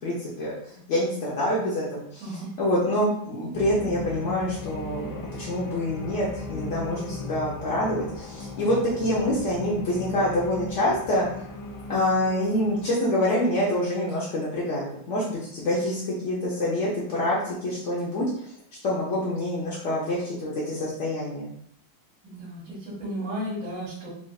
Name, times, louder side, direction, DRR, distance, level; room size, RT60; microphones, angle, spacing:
voice 1, 0.0-2.2 2.6-11.3 11.9-18.5 18.8-21.5, left 1 dB, 60° left, -6 dB, 0.7 m, -26 dB
voice 2, 2.2-2.5 22.2-24.1, equal, 45° right, -11 dB, 1.9 m, -34 dB
sound 1, 3.5-12.9, left 2 dB, 75° left, 1.6 m, -37 dB
4.8 x 2.5 x 2.3 m, 0.66 s
omnidirectional pair, 2.2 m